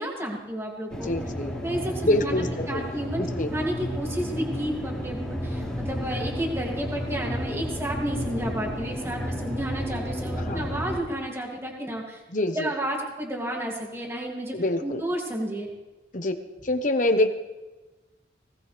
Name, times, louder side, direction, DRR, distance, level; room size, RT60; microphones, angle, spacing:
voice 1, 0.0-1.1 1.6-12.2 12.5-15.7, right 1 dB, 15° right, -1 dB, 2.6 m, -32 dB
sound 1, 0.9-11.0, equal, 5° left, 3.3 m, -32 dB
voice 2, 1.0-1.5 2.0-2.9 3.2-3.5 10.5-10.7 12.3-12.7 14.5-15.0 16.1-16.3 16.6-17.3, left 1 dB, 40° left, 7 dB, 1.2 m, -25 dB
20.0 x 18.0 x 3.5 m, 1.2 s
head